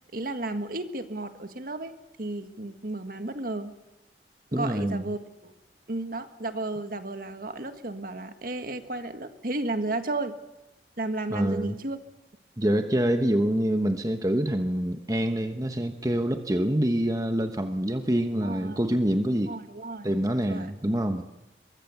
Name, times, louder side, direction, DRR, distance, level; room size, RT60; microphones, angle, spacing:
voice 1, 0.1-1.9 2.2-3.8 4.5-5.5 5.9-10.4 11.0-12.0 18.3-18.8 19.4-20.1 20.5-20.7, right 2 dB, 50° right, 8 dB, 1.8 m, -33 dB
voice 2, 4.5-5.1 11.3-11.8 12.6-19.5 20.0-21.2, right 1 dB, 20° right, 7 dB, 1.1 m, -26 dB
23.0 x 23.0 x 7.1 m, 0.95 s
head